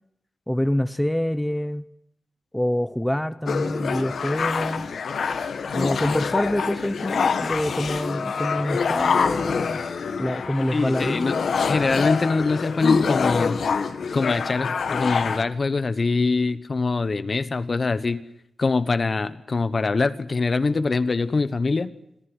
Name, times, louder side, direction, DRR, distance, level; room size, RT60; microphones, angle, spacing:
voice 1, 0.5-1.8 2.5-4.9 5.7-9.8 10.2-11.5, left 1 dB, 5° left, 12 dB, 0.9 m, -26 dB
sound 1, 3.5-15.4, left 5 dB, 85° left, 1.5 m, -26 dB
voice 2, 10.7-11.3 11.6-13.6 14.1-18.2 18.6-21.9, left 3 dB, 40° left, 13 dB, 1.1 m, -23 dB
27.0 x 15.0 x 9.8 m, 0.79 s
wide cardioid pair, 140°, 0 cm